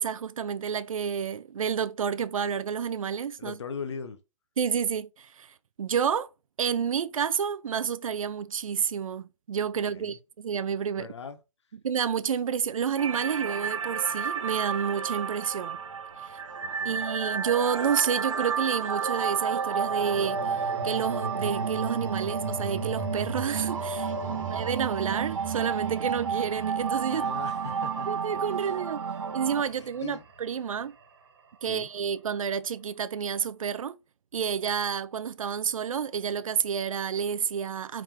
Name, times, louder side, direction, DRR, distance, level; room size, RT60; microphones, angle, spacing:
voice 1, 0.0-3.5 4.6-6.3 6.6-11.1 11.8-15.8 16.2-16.4 16.8-20.6 20.8-24.1 24.5-27.2 28.1-29.0 29.3-30.9 31.6-34.0 34.3-38.0, right 7 dB, 90° right, 0.5 m, -29 dB
voice 2, 3.4-4.2 9.9-10.2 11.0-11.4 16.6-17.0 24.2-24.5 27.1-28.2 28.5-28.7 29.7-30.2 31.7-31.9, left 6 dB, 55° left, 0.8 m, -40 dB
sound 1, 13.0-29.6, right 6 dB, 70° right, 0.8 m, -31 dB
sound 2, 15.7-17.9 19.6-31.8, right 4 dB, 45° right, 1.4 m, -41 dB
4.8 x 3.7 x 2.8 m
hypercardioid pair, 175°, 17 cm